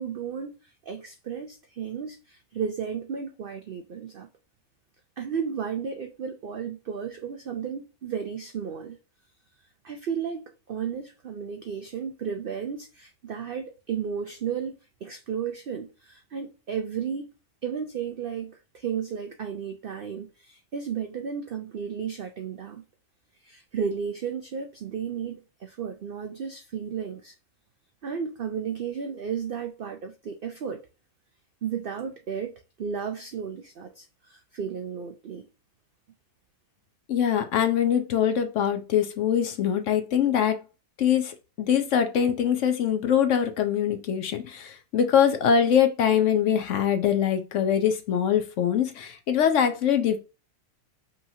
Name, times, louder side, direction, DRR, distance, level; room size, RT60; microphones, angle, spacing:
voice 1, 0.0-4.3 5.2-9.0 9.8-14.7 15.0-17.3 17.6-22.8 23.4-27.3 28.0-30.8 31.6-32.5 32.8-35.5, right 7 dB, 80° right, 0.5 m, -33 dB
voice 2, 37.1-40.6 41.0-50.2, left 8 dB, 65° left, 0.9 m, -23 dB
5.4 x 2.9 x 2.7 m
omnidirectional pair, 1.6 m